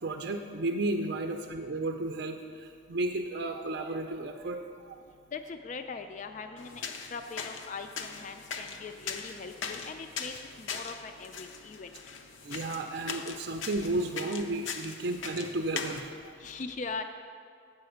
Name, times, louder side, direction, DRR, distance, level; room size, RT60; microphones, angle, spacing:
voice 1, 0.0-5.0 12.4-16.3, right 2 dB, 55° right, 4 dB, 0.5 m, -33 dB
voice 2, 5.3-10.3 10.6-11.9 16.4-17.0, left 4 dB, 40° left, 7 dB, 0.3 m, -40 dB
sound 1, 6.6-16.0, left 5 dB, 80° left, 0.6 m, -40 dB
7.8 x 5.7 x 7.8 m, 2.3 s
head